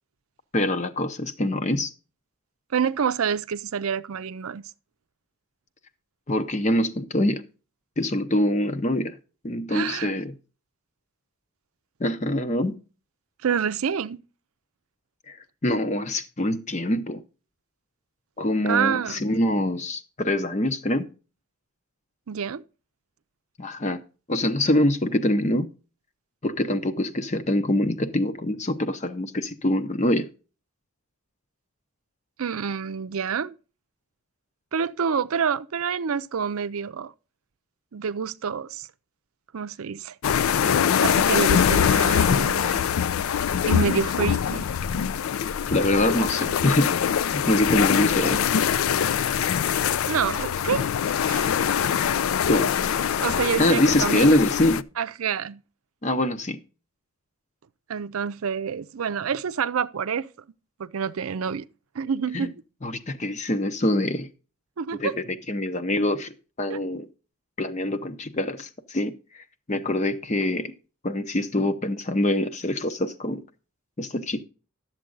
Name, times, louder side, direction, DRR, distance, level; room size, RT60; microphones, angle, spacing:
voice 1, 0.5-1.9 6.3-7.4 8.0-9.1 9.4-10.3 12.0-12.8 15.3-15.4 15.6-17.2 18.4-21.0 23.6-24.0 24.3-25.7 26.4-30.3 45.7-46.9 47.3-48.4 52.5-52.7 53.6-54.8 56.0-56.6 62.3-62.5 62.8-64.3 65.0-65.1 65.5-67.1 67.6-69.1 69.7-70.7 71.0-73.4 74.0-74.4, left 1 dB, 35° left, 0.7 m, -24 dB
voice 2, 2.7-4.7 9.7-10.1 13.4-14.2 18.6-19.2 22.3-22.6 32.4-33.5 34.7-37.1 37.9-38.9 39.5-40.1 41.0-42.9 43.7-44.6 50.1-50.9 51.3-51.6 53.2-54.4 55.0-55.6 57.9-60.3 60.8-61.7 61.9-62.5 64.8-65.2 66.7-66.8, right 6 dB, 85° right, 0.5 m, -27 dB
sound 1, 40.2-54.8, left 8 dB, 80° left, 0.4 m, -23 dB
11.5 x 7.4 x 3.8 m
head